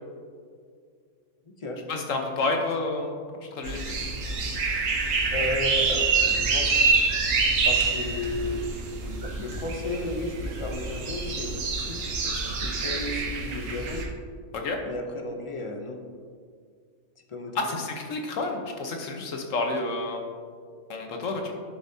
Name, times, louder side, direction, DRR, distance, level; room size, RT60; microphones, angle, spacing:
voice 1, 1.9-3.2 3.5-3.8 12.2-12.4 12.8-12.9 14.5-14.8 17.5-20.2 20.9-21.5, left 3 dB, 90° left, 3 dB, 1.4 m, -29 dB
sound 1, 3.6-14.0, right 4 dB, 90° right, 1.3 m, -26 dB
voice 2, 5.3-6.7 7.6-8.7 9.0-12.0 12.6-14.0 14.8-16.0 17.3-17.8, left 1 dB, 30° left, 4 dB, 0.7 m, -33 dB
11.5 x 7.0 x 2.8 m, 2.1 s
omnidirectional pair, 1.3 m